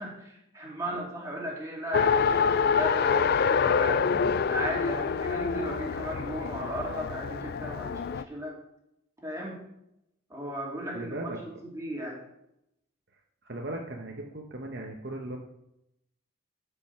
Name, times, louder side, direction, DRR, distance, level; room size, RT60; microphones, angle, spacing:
voice 1, 0.0-4.0 4.5-8.6 9.2-9.6 10.3-12.2, equal, 15° right, -3 dB, 2.6 m, -36 dB
Race car auto racing, 1.9-8.2, left 6 dB, 50° left, 0.3 m, -26 dB
voice 2, 10.9-11.4 13.4-15.4, right 1 dB, 50° right, 1 dB, 1.0 m, -37 dB
12.0 x 5.3 x 5.7 m, 0.83 s
head